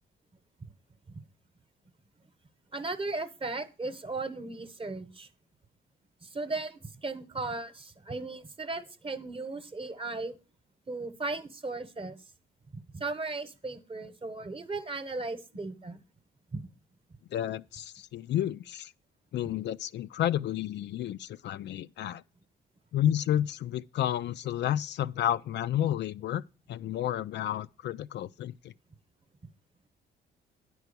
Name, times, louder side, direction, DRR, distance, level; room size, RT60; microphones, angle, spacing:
voice 1, 2.7-5.3 6.2-10.4 10.9-12.2 12.9-16.0 16.5-16.6, right 3 dB, 25° right, 1.0 m, -36 dB
voice 2, 17.3-18.9 19.3-22.2 22.9-26.4 26.7-28.7, left 11 dB, 60° left, 0.4 m, -31 dB
9.5 x 4.7 x 6.7 m
cardioid pair, 90°, 20 cm